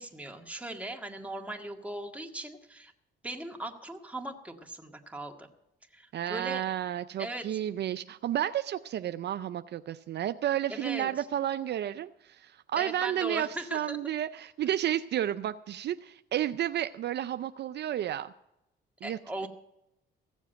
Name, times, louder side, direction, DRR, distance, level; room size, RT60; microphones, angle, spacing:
voice 1, 0.0-2.9 3.2-5.5 5.9-6.7 7.2-7.4 10.7-11.1 12.8-14.0 19.0-19.5, right 1 dB, 5° right, 2 dB, 1.8 m, -39 dB
voice 2, 6.1-18.3 19.0-19.5, right 11 dB, 60° right, 11 dB, 0.5 m, -32 dB
15.5 x 7.3 x 8.9 m, 0.85 s
cardioid pair, 90°, 20 cm